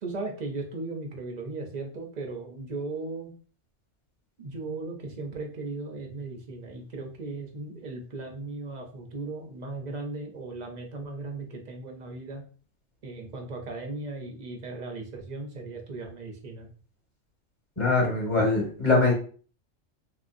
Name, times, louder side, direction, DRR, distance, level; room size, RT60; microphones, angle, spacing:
voice 1, 0.0-3.3 4.4-12.4 13.0-16.7, right 3 dB, 55° right, 2 dB, 0.5 m, -37 dB
voice 2, 17.8-19.1, left 3 dB, 25° left, -3 dB, 1.3 m, -22 dB
3.0 x 2.7 x 2.5 m, 0.40 s
omnidirectional pair, 1.3 m